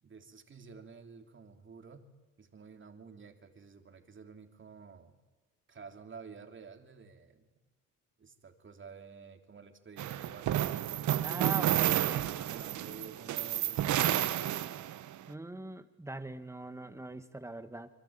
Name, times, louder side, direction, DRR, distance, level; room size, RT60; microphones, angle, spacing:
voice 1, 0.0-2.1 2.4-5.2 5.7-7.5 8.2-10.6 11.5-12.0 12.5-14.3, right 5 dB, 40° right, 6 dB, 3.3 m, -51 dB
sound 1, 10.0-15.1, right 12 dB, 70° right, 1.1 m, -31 dB
voice 2, 11.2-12.3 15.3-17.9, right 2 dB, 10° right, 10 dB, 2.0 m, -42 dB
26.5 x 23.5 x 8.9 m, 1.2 s
cardioid pair, 90°, 30 cm